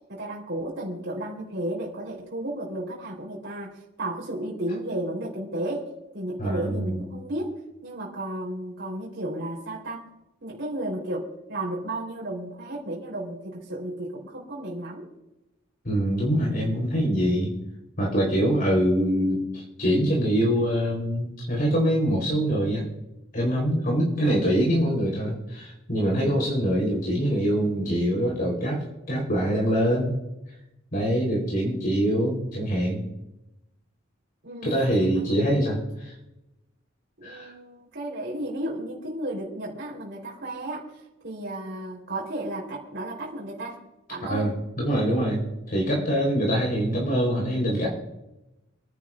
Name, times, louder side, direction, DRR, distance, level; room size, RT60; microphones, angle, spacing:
voice 1, 0.1-10.0 10.4-15.1 24.1-24.2 34.4-35.4 37.2-40.9 41.2-43.8 44.1-44.6, right 1 dB, 60° right, -4 dB, 3.7 m, -33 dB
voice 2, 6.4-7.0 15.8-17.5 18.0-22.8 23.3-30.1 30.9-33.0 34.6-36.1 37.2-37.5 44.2-47.9, equal, 45° left, -2 dB, 3.8 m, -24 dB
28.5 x 10.5 x 2.5 m, 0.94 s
head